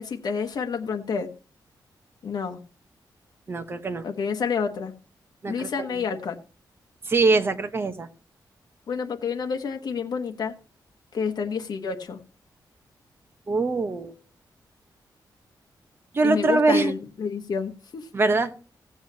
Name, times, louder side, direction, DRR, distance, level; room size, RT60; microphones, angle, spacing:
voice 1, 0.0-1.3 2.2-2.6 4.0-4.9 5.5-6.4 8.9-10.5 11.1-12.2 16.2-18.1, left 6 dB, 60° left, 4 dB, 1.1 m, -29 dB
voice 2, 3.5-4.0 5.4-5.9 7.1-8.1 13.5-14.1 16.1-16.9 18.1-18.5, right 3 dB, 30° right, 8 dB, 1.0 m, -23 dB
16.5 x 8.0 x 2.8 m, 0.35 s
wide cardioid pair, 160°, 8 cm